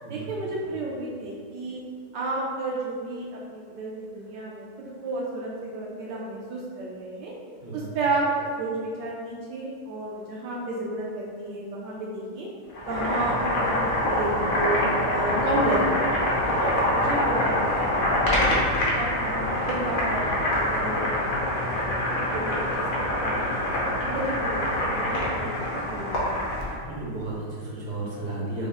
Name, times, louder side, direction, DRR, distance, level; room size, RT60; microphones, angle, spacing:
voice 1, 0.1-1.8 2.1-7.3 7.7-8.2 8.6-12.5 12.9-14.8 15.1-16.1 16.5-18.0 18.3-18.5 19.0-22.7 23.0-23.5 24.0-26.5, right 2 dB, 70° right, -4 dB, 1.1 m, -32 dB
voice 2, 7.6-8.0 16.5-17.0 26.8-28.7, right 2 dB, 40° right, -6 dB, 0.6 m, -34 dB
Boiling, 12.7-26.8, left 1 dB, 60° left, 1.0 m, -25 dB
5.4 x 2.0 x 3.4 m, 2.1 s
omnidirectional pair, 2.2 m